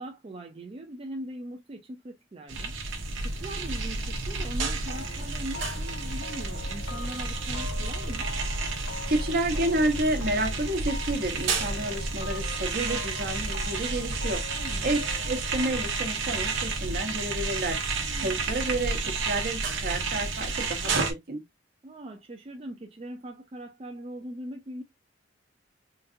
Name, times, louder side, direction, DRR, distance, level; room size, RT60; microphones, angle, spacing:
voice 1, 0.0-2.7 3.2-8.3 14.5-14.9 18.0-18.4 21.8-24.8, right 1 dB, 30° right, 0.4 m, -40 dB
sound 1, 2.5-21.1, right 3 dB, 80° right, 1.0 m, -31 dB
sound 2, 4.9-18.4, left 3 dB, 90° left, 0.8 m, -44 dB
voice 2, 9.1-14.4 14.8-15.0 15.3-17.8 18.2-21.4, right 1 dB, 55° right, 1.0 m, -30 dB
3.8 x 2.6 x 2.6 m
head